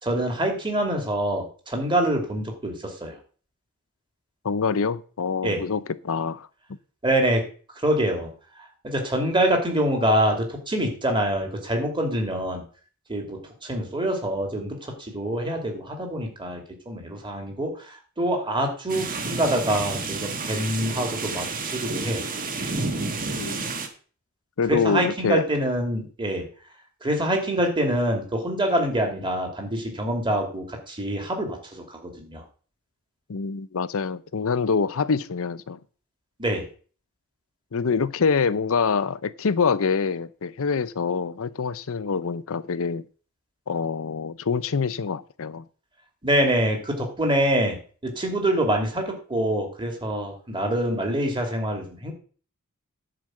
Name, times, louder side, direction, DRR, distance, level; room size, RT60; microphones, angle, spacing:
voice 1, 0.0-3.2 5.4-5.6 7.0-7.4 7.8-8.3 8.8-12.6 13.1-22.3 24.7-26.5 27.0-32.4 36.4-36.7 46.2-47.8 48.0-52.1, right 1 dB, 20° right, 2.6 m, -25 dB
voice 2, 4.4-6.5 23.4-23.7 24.6-25.5 27.6-27.7 33.3-35.8 37.7-43.0 43.7-45.6, left 5 dB, 65° left, 0.6 m, -25 dB
sound 1, 18.9-23.9, right 3 dB, 40° right, 1.5 m, -30 dB
10.5 x 4.8 x 7.7 m
head